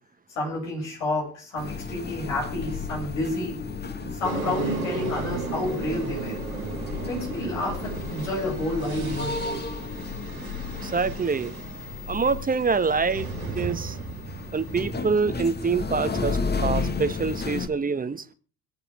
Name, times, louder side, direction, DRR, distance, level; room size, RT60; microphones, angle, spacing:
voice 1, 0.4-3.6 4.0-6.4 6.9-9.6, left 2 dB, 75° left, -2 dB, 7.2 m, -30 dB
sound 1, 1.6-17.7, left 4 dB, 25° left, 1.8 m, -33 dB
sound 2, 4.2-15.2, right 5 dB, 90° right, 2.5 m, -36 dB
voice 2, 10.8-11.5 12.1-13.3 13.5-13.9 14.5-18.2, right 5 dB, 20° right, 12 dB, 1.3 m, -25 dB
25.0 x 8.8 x 3.5 m, 0.39 s
figure-of-eight pair, 55°, 41 cm